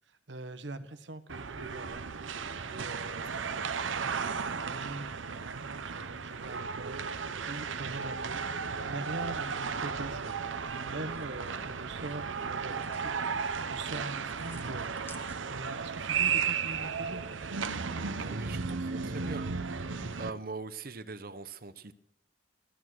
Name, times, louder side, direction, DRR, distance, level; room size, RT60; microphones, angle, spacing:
voice 1, 0.1-2.1 2.6-3.6 4.0-10.3 10.6-17.2, right 2 dB, 70° right, 11 dB, 1.2 m, -43 dB
sound 1, 1.3-20.3, right 5 dB, 85° right, 0.8 m, -35 dB
sound 2, 10.5-15.8, left 1 dB, 10° left, 1.5 m, -57 dB
voice 2, 18.0-19.5 20.2-21.9, right 4 dB, 50° right, 13 dB, 0.8 m, -42 dB
16.0 x 13.0 x 6.3 m, 0.81 s
head